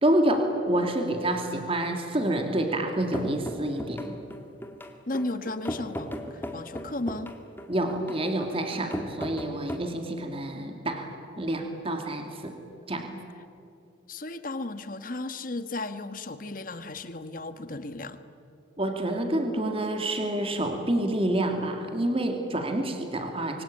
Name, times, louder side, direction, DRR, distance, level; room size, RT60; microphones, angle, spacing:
voice 1, 0.0-4.2 7.7-11.1 11.4-12.5 12.9-13.2 18.8-23.6, right 1 dB, 30° right, 4 dB, 2.6 m, -28 dB
sound 1, 3.1-9.8, equal, 10° left, 1.9 m, -37 dB
voice 2, 5.1-7.3 14.1-18.2, left 2 dB, 45° left, 10 dB, 1.4 m, -35 dB
26.0 x 24.0 x 8.8 m, 2.7 s
head